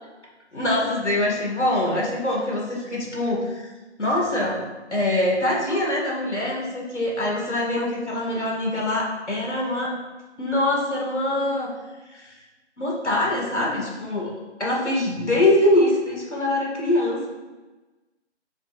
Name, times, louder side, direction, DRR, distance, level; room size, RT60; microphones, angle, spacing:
voice 1, 0.5-3.7 4.0-4.6 4.9-9.9 10.4-11.7 12.1-12.4 12.8-14.3 14.6-17.3, left 1 dB, 75° left, -2 dB, 2.2 m, -23 dB
7.0 x 6.4 x 2.6 m, 1.1 s
figure-of-eight pair, 155°, 35 cm